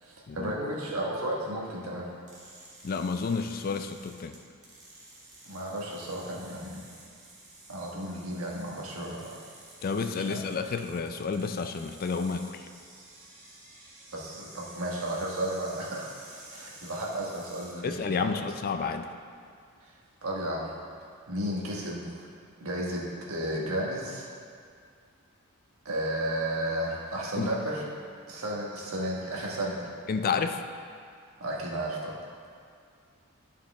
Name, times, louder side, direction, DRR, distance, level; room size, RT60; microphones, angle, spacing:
voice 1, 0.0-2.1 5.5-6.8 7.7-9.4 10.3-10.4 14.1-16.1 16.5-18.4 20.2-20.7 21.3-22.3 22.6-24.2 25.8-27.8 28.3-29.9 31.4-32.2, right 1 dB, 85° right, -3 dB, 1.4 m, -33 dB
sound 1, 2.3-17.8, right 2 dB, 35° right, 1.6 m, -51 dB
voice 2, 2.8-4.3 9.8-12.6 17.8-19.1 27.4-27.5 30.1-30.6, left 5 dB, 45° left, 7 dB, 0.4 m, -30 dB
11.5 x 4.8 x 3.4 m, 2.2 s
head